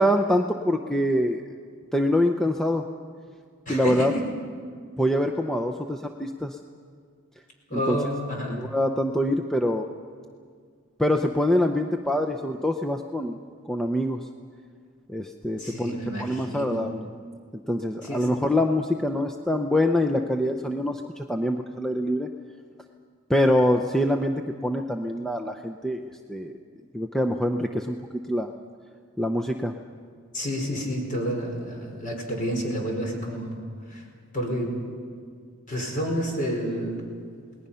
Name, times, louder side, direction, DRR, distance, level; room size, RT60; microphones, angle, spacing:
voice 1, 0.0-1.4 1.9-2.9 3.7-4.1 5.0-6.6 7.7-8.0 8.5-9.8 11.0-13.4 13.7-14.3 15.1-17.1 17.7-22.3 23.3-26.0 26.3-26.5 26.9-28.5 29.2-29.7, left 1 dB, ahead, 3 dB, 0.6 m, -25 dB
voice 2, 3.7-4.1 7.7-8.6 15.6-16.8 18.0-18.3 30.3-33.5 33.9-34.0 34.3-34.8 35.7-37.0, equal, 40° left, 0 dB, 4.8 m, -29 dB
28.5 x 19.5 x 5.6 m, 2.1 s
head